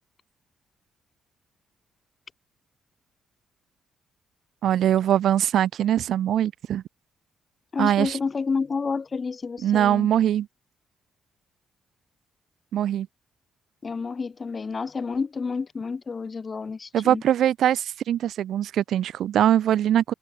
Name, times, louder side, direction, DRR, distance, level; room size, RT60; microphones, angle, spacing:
voice 1, 4.6-6.8 7.8-8.2 9.6-10.5 12.7-13.1 16.9-20.1, right 11 dB, 70° right, 1.8 m, -22 dB
voice 2, 7.7-10.1 13.8-17.2, left 4 dB, 40° left, 5.1 m, -29 dB
hypercardioid pair, 50°, 0 cm